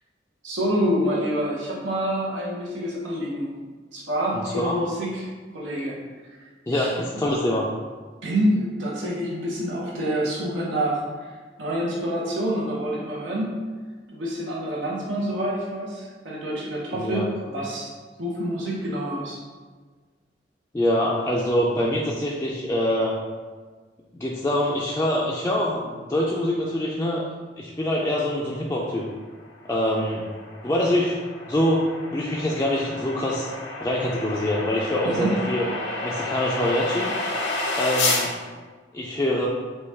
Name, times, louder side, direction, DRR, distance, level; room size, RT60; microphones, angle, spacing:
voice 1, 0.4-3.5 3.9-6.0 6.3-6.4 6.7-7.0 8.2-11.3 11.6-13.6 14.1-17.9 18.2-19.4 35.0-35.3, equal, 90° right, -5 dB, 0.9 m, -27 dB
voice 2, 4.3-4.8 6.7-7.7 16.9-17.3 20.7-23.2 24.1-27.2 27.6-29.1 29.7-30.2 30.6-31.2 31.5-31.8 32.1-33.5 33.8-35.6 36.0-37.1 37.8-38.3 38.9-39.5, left 1 dB, 15° left, -4 dB, 0.3 m, -24 dB
sound 1, 29.6-38.3, left 2 dB, 80° left, 0.8 m, -30 dB
5.3 x 2.3 x 3.5 m, 1.4 s
head